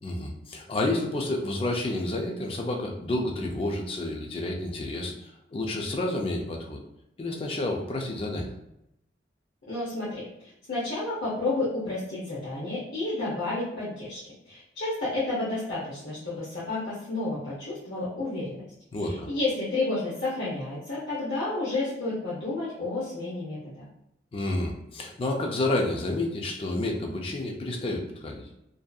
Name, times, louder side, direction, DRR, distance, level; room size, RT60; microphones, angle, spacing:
voice 1, 0.0-6.8 7.2-8.5 18.9-19.3 24.3-28.4, left 2 dB, 30° left, 1 dB, 0.3 m, -30 dB
voice 2, 9.7-10.3 10.7-18.6 19.0-23.9, left 2 dB, 60° left, -9 dB, 0.7 m, -31 dB
2.6 x 2.4 x 2.2 m, 0.82 s
head